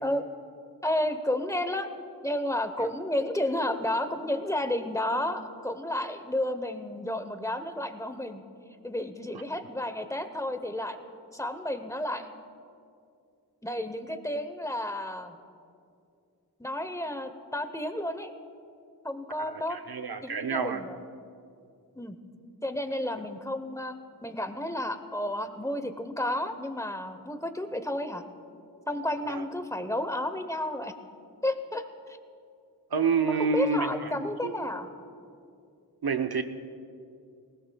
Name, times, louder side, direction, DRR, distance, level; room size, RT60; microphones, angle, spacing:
voice 1, 0.8-1.9 2.2-8.4 8.8-11.0 11.3-12.3 13.6-15.4 16.6-18.3 19.0-19.8 20.2-21.0 21.9-22.2 22.6-23.9 24.2-28.2 28.9-30.9 31.4-32.2 33.2-34.9, left 1 dB, 10° left, 9 dB, 0.8 m, -31 dB
voice 2, 19.4-20.8 29.3-29.4 32.9-34.7 36.0-36.4, right 5 dB, 70° right, 7 dB, 0.8 m, -29 dB
20.0 x 18.5 x 2.3 m, 2.5 s
wide cardioid pair, 55°, 39 cm